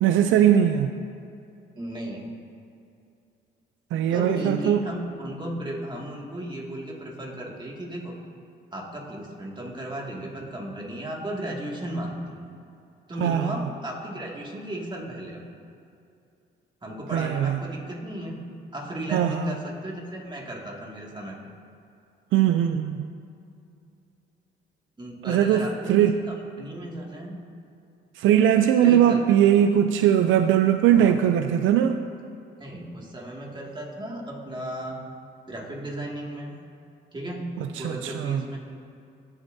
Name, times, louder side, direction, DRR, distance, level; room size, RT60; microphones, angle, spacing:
voice 1, 0.0-0.9 3.9-4.8 13.2-13.6 17.1-17.6 19.1-19.4 22.3-23.1 25.3-26.1 28.2-32.0 37.8-38.4, right 10 dB, 80° right, 8 dB, 0.4 m, -20 dB
voice 2, 1.8-2.2 4.0-8.1 8.7-12.4 13.1-15.4 16.8-18.4 18.7-21.4 25.0-27.4 28.8-29.4 31.0-31.2 32.6-35.0 35.5-36.5 37.1-37.5 37.8-38.6, right 1 dB, 25° right, -2 dB, 2.1 m, -34 dB
19.0 x 7.1 x 2.7 m, 2.5 s
cardioid pair, 90°, 20 cm